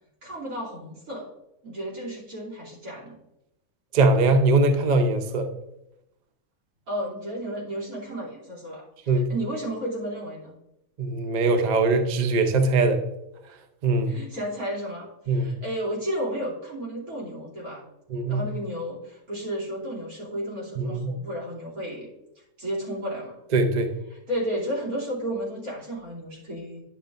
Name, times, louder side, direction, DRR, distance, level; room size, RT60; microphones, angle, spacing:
voice 1, 0.2-1.3 1.6-3.2 6.9-10.5 14.1-17.8 18.3-22.1 22.6-23.4 24.1-26.8, equal, 75° right, -5 dB, 3.3 m, -33 dB
voice 2, 3.9-5.5 9.1-9.3 11.0-13.0 13.8-14.1 15.3-15.5 18.1-18.5 20.8-21.1 23.5-23.9, right 3 dB, 45° right, 6 dB, 0.6 m, -21 dB
10.5 x 7.2 x 2.5 m, 0.88 s
omnidirectional pair, 1.6 m